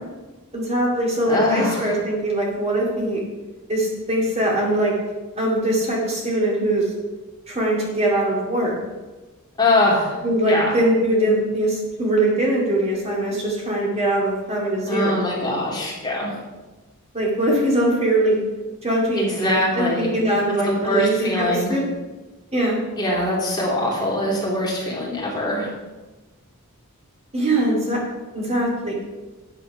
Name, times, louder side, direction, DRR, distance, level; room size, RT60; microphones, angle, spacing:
voice 1, 0.5-3.2 3.7-4.9 5.3-6.9 7.5-8.8 10.2-15.3 17.1-18.4 18.8-21.8 22.5-22.8 27.3-28.0 28.3-28.9, right 1 dB, 30° right, -3 dB, 2.3 m, -22 dB
voice 2, 1.3-2.0 9.6-10.2 10.5-10.7 14.9-16.4 19.2-20.1 20.7-21.7 23.0-25.7, left 1 dB, 20° left, -4 dB, 2.9 m, -22 dB
9.0 x 7.8 x 5.7 m, 1.2 s
head